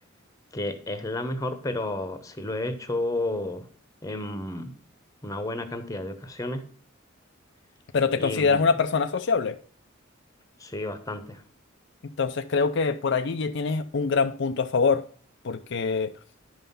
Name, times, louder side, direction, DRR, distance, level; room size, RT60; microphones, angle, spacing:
voice 1, 0.5-3.7 4.0-4.7 5.2-6.6 8.2-8.7 10.6-11.4, left 1 dB, 15° left, 1.0 m, -31 dB
voice 2, 7.9-9.5 12.2-15.0 15.4-16.1, left 5 dB, 60° left, 0.5 m, -24 dB
10.5 x 5.6 x 5.6 m
head